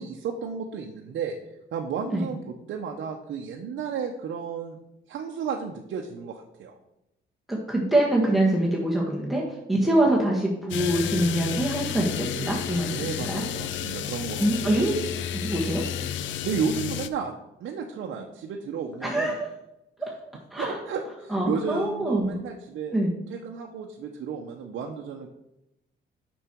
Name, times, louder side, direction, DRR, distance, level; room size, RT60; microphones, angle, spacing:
voice 1, 0.0-1.4 1.7-4.8 5.1-6.8 9.8-10.1 12.9-14.8 16.4-17.3 17.6-19.3 20.6-22.9 23.3-25.3, right 6 dB, 70° right, 1 dB, 0.8 m, -33 dB
voice 2, 7.5-13.4 14.4-14.9 15.3-15.8 19.0-19.5 20.0-20.1 20.5-20.8 21.3-22.3 22.9-23.1, right 1 dB, ahead, -2 dB, 1.5 m, -24 dB
sound 1, 10.7-17.1, left 10 dB, 75° left, 0.5 m, -31 dB
6.7 x 6.3 x 4.5 m, 0.88 s
cardioid pair, 90°, 20 cm